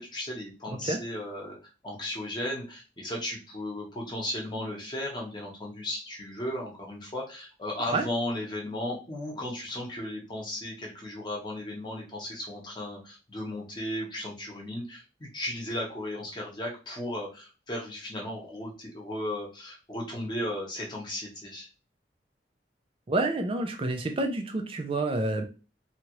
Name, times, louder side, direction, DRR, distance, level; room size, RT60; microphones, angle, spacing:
voice 1, 0.0-21.7, left 1 dB, 25° left, -2 dB, 0.9 m, -35 dB
voice 2, 23.1-25.4, right 2 dB, 30° right, 4 dB, 0.4 m, -28 dB
2.8 x 2.4 x 3.0 m, 0.32 s
head